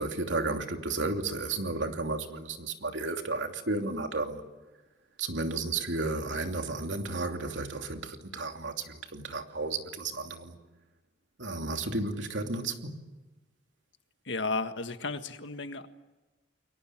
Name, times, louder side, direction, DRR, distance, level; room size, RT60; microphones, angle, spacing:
voice 1, 0.0-4.4 5.2-10.6 11.4-13.0, right 3 dB, 80° right, 5 dB, 2.8 m, -33 dB
voice 2, 14.2-15.9, left 3 dB, 75° left, 9 dB, 1.7 m, -33 dB
30.0 x 23.0 x 7.5 m, 1.2 s
head